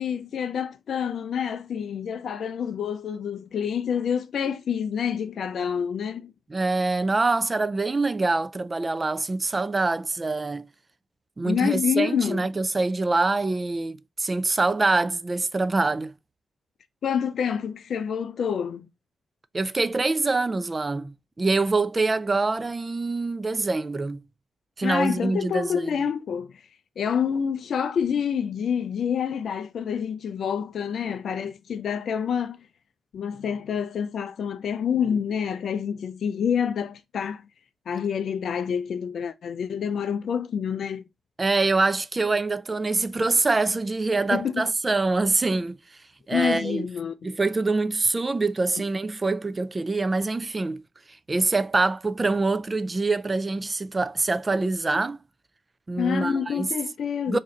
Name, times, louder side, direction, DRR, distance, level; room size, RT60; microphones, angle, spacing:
voice 1, 0.0-6.3 11.4-12.5 17.0-18.9 24.8-26.5 27.0-32.6 33.1-37.4 37.9-41.0 44.3-44.6 46.3-47.1 56.0-57.4, left 7 dB, 70° left, 0.3 m, -27 dB
voice 2, 6.5-10.7 11.4-16.1 19.5-24.2 24.8-26.0 41.4-45.7 46.3-46.9 47.2-50.8 51.3-55.2 55.9-56.7 57.3-57.4, right 3 dB, 35° right, 0.3 m, -25 dB
3.0 x 2.6 x 3.6 m
supercardioid pair, 45°, 0 cm